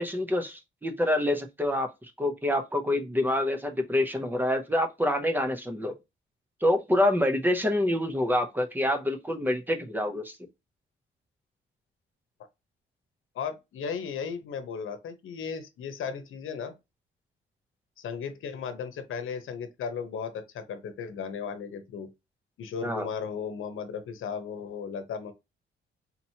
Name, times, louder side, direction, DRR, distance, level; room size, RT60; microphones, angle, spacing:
voice 1, 0.0-1.9 2.2-5.9 6.6-10.4 22.8-23.1, left 1 dB, 10° right, 0.7 m, -26 dB
voice 2, 13.3-16.7 18.0-22.1 22.6-25.3, left 6 dB, 75° left, 0.9 m, -35 dB
4.1 x 2.9 x 2.8 m
cardioid pair, 145°, 21 cm